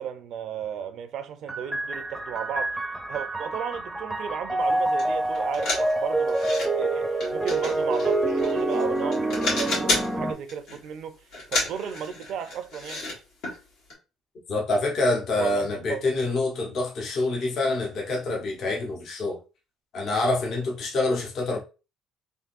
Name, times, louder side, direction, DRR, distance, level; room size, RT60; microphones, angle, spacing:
voice 1, 0.0-2.8 3.1-11.2 11.5-13.0 15.4-16.0, right 8 dB, 65° right, 0.5 m, -34 dB
sound 1, 1.5-10.3, right 2 dB, 5° right, 0.5 m, -27 dB
sound 2, 5.0-5.1 5.3-6.7 7.2-8.8 9.1-10.1 10.5-10.9 11.3-13.1 13.4-13.6 13.9-14.0, left 2 dB, 75° left, 1.6 m, -30 dB
voice 2, 14.5-19.4 19.9-21.6, left 2 dB, 55° left, 0.9 m, -26 dB
3.6 x 2.6 x 2.5 m
cardioid pair, 95°, 0 cm